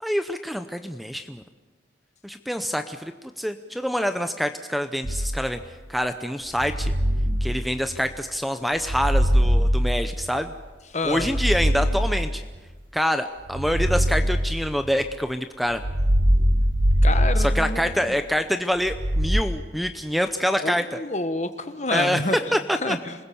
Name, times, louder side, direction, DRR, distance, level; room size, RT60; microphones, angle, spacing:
voice 1, 0.0-1.4 2.2-3.1 3.4-5.6 5.9-6.9 7.4-10.5 11.0-12.4 12.9-15.8 17.4-21.0 21.9-22.2 22.5-23.0, equal, ahead, 8 dB, 0.7 m, -26 dB
sound 1, 5.0-5.7 6.5-8.2 8.8-10.6 11.1-12.7 13.5-15.1 15.7-18.2 18.8-19.4, equal, 75° right, 1.5 m, -22 dB
voice 2, 10.9-11.3 17.0-18.0 20.6-22.4 22.8-23.1, left 2 dB, 40° left, 10 dB, 1.4 m, -28 dB
27.0 x 20.5 x 7.0 m, 1.3 s
head